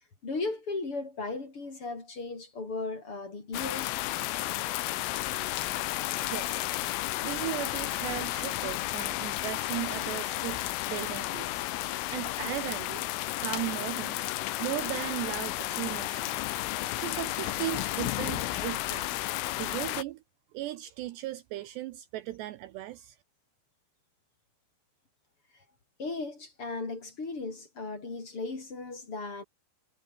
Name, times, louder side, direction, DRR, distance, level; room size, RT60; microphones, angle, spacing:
voice 1, 0.2-4.0 26.0-29.4, left 3 dB, 30° left, 4.4 m, -36 dB
sound 1, 3.5-20.0, left 17 dB, 80° left, 3.7 m, -32 dB
voice 2, 5.6-6.7 7.2-11.8 12.1-20.2 20.5-23.2, right 16 dB, 90° right, 2.4 m, -37 dB
omnidirectional pair, 6.0 m